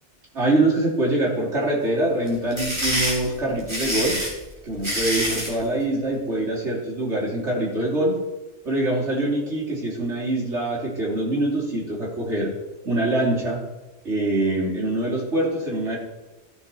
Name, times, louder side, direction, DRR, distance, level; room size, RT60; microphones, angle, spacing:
voice 1, 0.3-4.2 4.6-8.2 8.7-12.5 12.8-13.6 14.1-16.0, right 1 dB, 75° right, -4 dB, 3.5 m, -24 dB
sound 1, 2.3-5.6, equal, 25° right, 3.4 m, -26 dB
14.5 x 6.5 x 4.5 m, 1.1 s
omnidirectional pair, 1.2 m